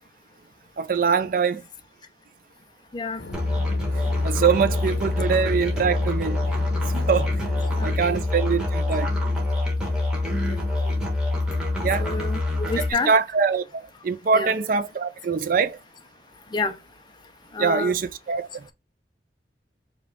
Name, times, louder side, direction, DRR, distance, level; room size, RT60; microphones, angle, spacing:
voice 1, 0.8-1.6 4.2-6.4 6.9-7.3 7.8-9.1 11.8-12.1 13.1-15.8 17.6-18.5, right 5 dB, 50° right, 0.4 m, -23 dB
sound 1, 3.2-8.2, left 1 dB, 70° left, 1.0 m, -38 dB
Musical instrument, 3.3-12.9, left 2 dB, 5° right, 1.3 m, -25 dB
voice 2, 7.8-8.2 10.3-11.0 12.0-13.1 14.3-14.6 16.5-16.8 17.5-18.0, left 3 dB, 25° left, 0.5 m, -30 dB
5.2 x 2.3 x 3.6 m
head